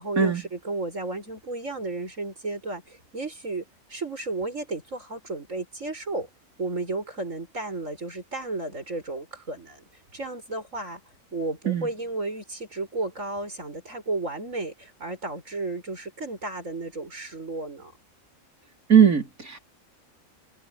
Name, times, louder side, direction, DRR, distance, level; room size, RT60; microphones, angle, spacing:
voice 1, 0.0-3.6 3.9-6.3 6.6-9.8 10.1-11.0 11.3-17.9, right 2 dB, 65° right, 7.6 m, -33 dB
voice 2, 18.9-19.6, right 8 dB, 90° right, 5.2 m, -19 dB
omnidirectional pair, 1.4 m